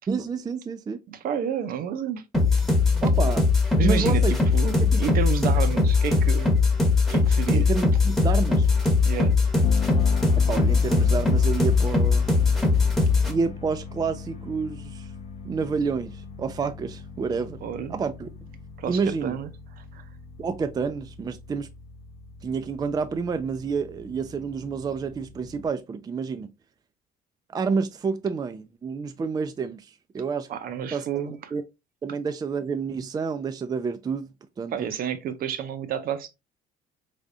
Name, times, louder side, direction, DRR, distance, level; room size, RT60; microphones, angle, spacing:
voice 1, 0.1-1.0 3.0-3.5 3.8-4.3 4.8-5.1 7.5-8.7 10.4-12.3 13.3-15.1 15.4-17.6 17.9-18.3 18.9-19.3 20.4-21.7 22.4-26.5 27.5-30.5 30.9-31.6 32.0-34.3 34.6-34.9, right 5 dB, 25° right, 0.4 m, -29 dB
voice 2, 1.1-2.2 2.6-2.7 3.8-6.5 7.1-7.7 9.0-9.3 17.6-17.9 18.8-19.5 19.9-20.0 30.5-31.4 34.7-36.3, right 8 dB, 60° right, 0.7 m, -30 dB
sound 1, 2.3-13.3, left 4 dB, ahead, 0.9 m, -20 dB
sound 2, 9.6-25.7, left 6 dB, 35° left, 0.6 m, -40 dB
3.8 x 3.4 x 2.5 m
cardioid pair, 110°, 17 cm